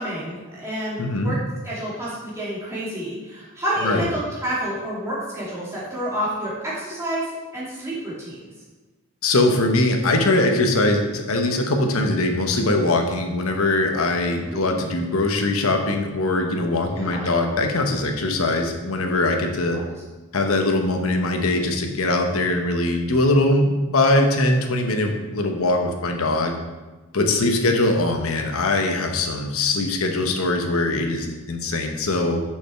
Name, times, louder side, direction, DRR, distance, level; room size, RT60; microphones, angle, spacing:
voice 1, 0.0-1.4 1.6-7.2 7.5-8.5 14.4-14.6 16.9-17.3 19.7-19.9, right 1 dB, 15° right, -8 dB, 2.6 m, -29 dB
voice 2, 1.0-1.3 3.8-4.1 9.2-19.8 20.3-26.5 27.1-32.4, left 2 dB, 75° left, 4 dB, 1.0 m, -21 dB
6.8 x 6.0 x 4.5 m, 1.2 s
head